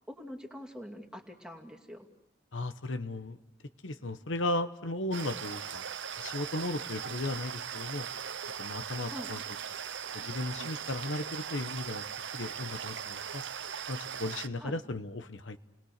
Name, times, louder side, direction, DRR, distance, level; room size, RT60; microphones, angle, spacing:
voice 1, 0.1-2.1 9.1-9.3 14.6-14.8, equal, 5° right, 0 dB, 2.4 m, -44 dB
voice 2, 2.5-3.4 3.8-5.8 6.2-8.1 8.6-9.4 10.1-12.0 12.3-13.4 13.9-15.6, left 2 dB, 85° left, 10 dB, 1.1 m, -36 dB
sound 1, 5.1-14.5, right 8 dB, 75° right, 0.8 m, -39 dB
30.0 x 20.5 x 6.7 m, 0.94 s
head